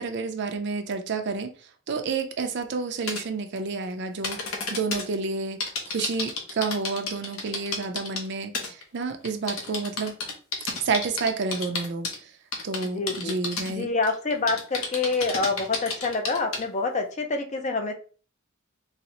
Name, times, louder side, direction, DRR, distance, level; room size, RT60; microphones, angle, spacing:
voice 1, 0.0-5.6 5.9-10.1 10.8-12.4 12.6-13.9, right 4 dB, 60° right, 0.5 m, -30 dB
sound 1, 3.1-3.2 4.2-5.0 5.6-8.3 8.5-8.8 9.2-12.2 12.5-13.7 14.0-16.6, left 3 dB, 80° left, 0.8 m, -31 dB
voice 2, 12.9-13.3 13.7-17.9, left 3 dB, 35° left, 0.5 m, -27 dB
4.0 x 2.1 x 2.8 m
head